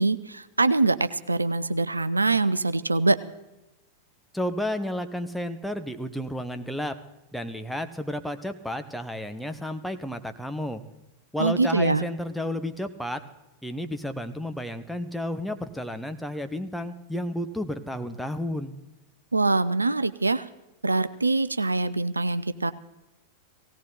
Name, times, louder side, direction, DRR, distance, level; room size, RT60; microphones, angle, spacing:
voice 1, 0.0-3.2 11.4-12.0 19.3-20.5 20.8-22.7, right 3 dB, 80° right, 14 dB, 0.5 m, -24 dB
voice 2, 4.3-7.0 7.3-10.8 11.3-13.2 13.6-18.7, left 1 dB, ahead, 7 dB, 1.1 m, -32 dB
18.0 x 16.5 x 4.0 m, 0.99 s
figure-of-eight pair, 90°, 0 cm